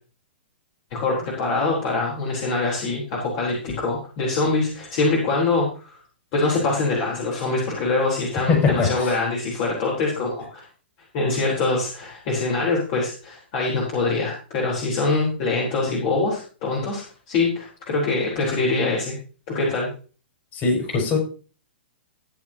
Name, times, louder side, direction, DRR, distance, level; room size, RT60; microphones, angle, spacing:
voice 1, 0.9-5.9 6.3-10.6 11.1-19.2 19.5-19.9, left 3 dB, 45° left, -3 dB, 3.9 m, -24 dB
voice 2, 8.5-9.1 20.5-21.2, left 4 dB, 30° left, 1 dB, 5.5 m, -21 dB
14.5 x 8.8 x 2.9 m, 0.37 s
hypercardioid pair, 125°, 6 cm